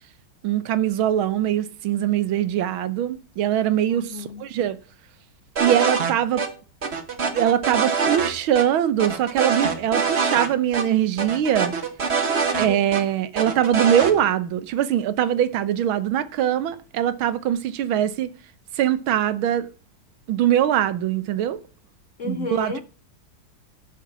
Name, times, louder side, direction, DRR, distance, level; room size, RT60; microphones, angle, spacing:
voice 1, 0.4-4.8 5.6-6.4 7.3-11.7 12.6-18.3 18.8-19.7 20.3-21.6 22.2-22.7, right 10 dB, 80° right, 1.7 m, -22 dB
voice 2, 3.9-4.5 12.5-12.9 22.2-22.8, left 4 dB, 60° left, 0.8 m, -33 dB
sound 1, 5.6-6.1 6.4-6.5 6.8-8.3 8.6-8.7 9.0-10.5 10.7-10.8 11.2-13.0 13.4-14.1, right 5 dB, 35° right, 1.5 m, -24 dB
12.0 x 6.0 x 7.3 m
omnidirectional pair, 2.2 m